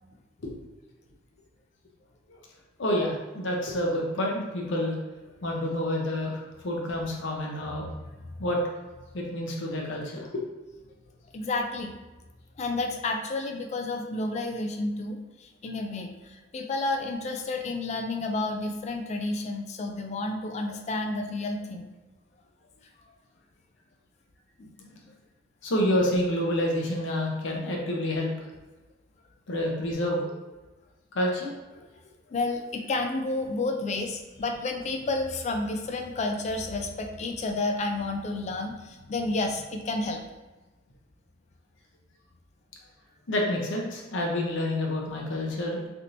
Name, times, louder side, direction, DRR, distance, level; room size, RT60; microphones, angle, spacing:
voice 1, 2.8-5.0 5.4-7.9 8.4-8.6 9.1-10.5 25.6-28.3 29.5-30.3 31.1-31.5 43.3-45.8, left 1 dB, 65° left, -1 dB, 0.7 m, -28 dB
voice 2, 11.3-11.9 12.6-21.9 24.6-25.1 32.3-40.2, left 2 dB, 35° left, 4 dB, 0.3 m, -31 dB
3.4 x 2.8 x 2.6 m, 1.1 s
head